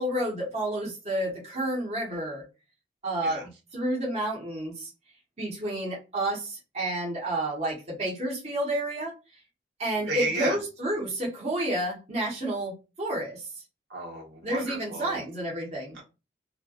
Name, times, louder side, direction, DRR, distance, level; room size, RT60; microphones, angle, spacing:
voice 1, 0.0-2.4 3.0-4.9 5.4-9.1 9.8-13.5 14.4-16.0, right 1 dB, 35° right, 1.1 m, -30 dB
voice 2, 10.1-10.6 13.9-15.2 15.9-16.0, right 3 dB, 80° right, 1.3 m, -33 dB
3.2 x 2.3 x 2.3 m
head